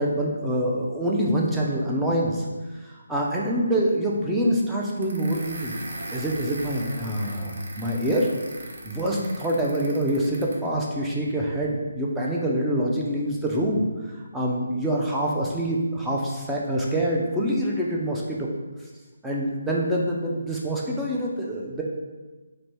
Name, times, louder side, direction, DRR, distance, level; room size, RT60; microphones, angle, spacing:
voice 1, 0.0-2.5 2.8-5.8 6.1-8.3 8.8-18.5 19.2-21.8, right 1 dB, 5° right, -4 dB, 0.4 m, -25 dB
sound 1, 5.0-10.7, right 2 dB, 55° right, 0.6 m, -39 dB
3.2 x 2.6 x 4.3 m, 1.2 s
hypercardioid pair, 160°, 0 cm